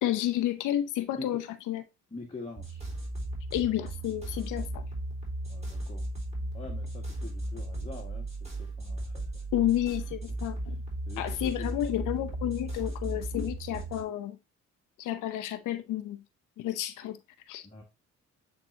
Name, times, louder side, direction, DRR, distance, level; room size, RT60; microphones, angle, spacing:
voice 1, 0.0-1.8 3.5-4.8 9.5-10.8 11.2-14.4 15.0-16.2 16.6-17.2 17.5-17.6, left 12 dB, 90° left, 0.8 m, -31 dB
voice 2, 2.1-2.8 5.5-6.0 6.5-9.4 11.0-11.7 17.6-17.8, left 3 dB, 20° left, 1.8 m, -44 dB
sound 1, 2.6-14.0, right 1 dB, 20° right, 4.3 m, -36 dB
9.5 x 3.9 x 2.8 m
cardioid pair, 90°, 30 cm